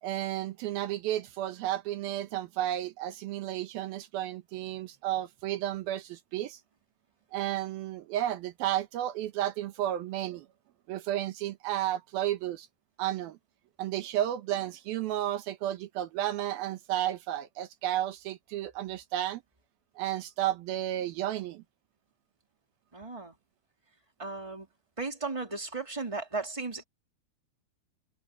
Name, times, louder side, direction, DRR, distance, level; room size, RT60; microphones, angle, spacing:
voice 1, 0.0-6.6 7.3-10.5 10.9-12.7 13.0-13.4 13.8-19.4 20.0-21.6, right 13 dB, 85° right, 3.0 m, -32 dB
voice 2, 22.9-23.4 24.2-24.7 25.0-26.8, right 3 dB, 10° right, 3.8 m, -35 dB
omnidirectional pair, 4.2 m